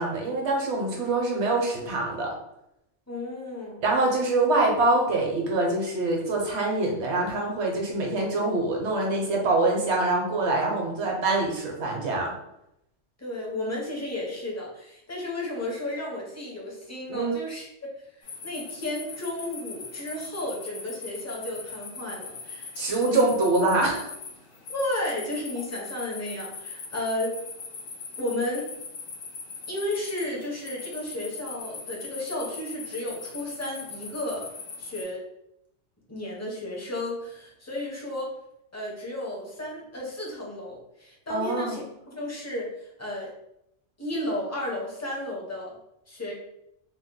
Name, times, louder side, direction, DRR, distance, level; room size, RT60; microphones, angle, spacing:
voice 1, 0.0-2.3 3.8-12.4 17.1-17.3 22.8-24.1 41.3-41.8, right 2 dB, 65° right, -1 dB, 1.1 m, -25 dB
voice 2, 3.1-3.9 13.2-17.7 18.2-22.8 23.0-23.4 24.7-27.4 28.2-28.7 29.7-34.4 34.8-35.2 36.1-38.3 38.7-41.8 42.1-43.3 44.0-45.8 46.1-46.3, left 1 dB, 15° left, -3 dB, 0.6 m, -33 dB
sound 1, 18.2-35.0, left 4 dB, 80° left, 1.1 m, -40 dB
2.9 x 2.1 x 3.7 m, 0.82 s
omnidirectional pair, 1.3 m